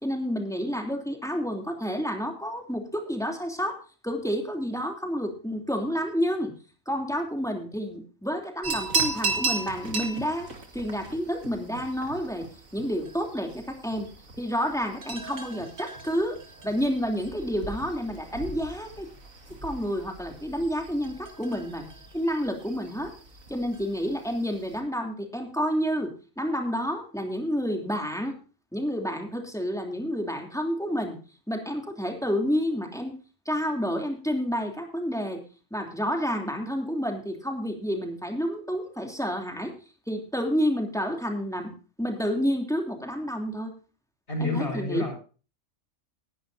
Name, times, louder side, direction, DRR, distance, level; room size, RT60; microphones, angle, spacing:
voice 1, 0.0-3.8 4.0-6.5 6.9-10.5 10.7-14.1 14.4-16.4 16.6-19.1 19.6-21.9 22.1-23.1 23.5-28.4 28.7-31.2 31.5-33.2 33.4-35.4 35.7-39.7 40.1-41.7 42.0-43.7 44.4-45.0, equal, ahead, 3 dB, 3.0 m, -29 dB
sound 1, 8.6-24.8, right 3 dB, 80° right, 2.6 m, -36 dB
voice 2, 44.3-45.1, left 2 dB, 50° left, -3 dB, 6.2 m, -29 dB
20.0 x 11.0 x 2.7 m, 0.36 s
omnidirectional pair, 1.4 m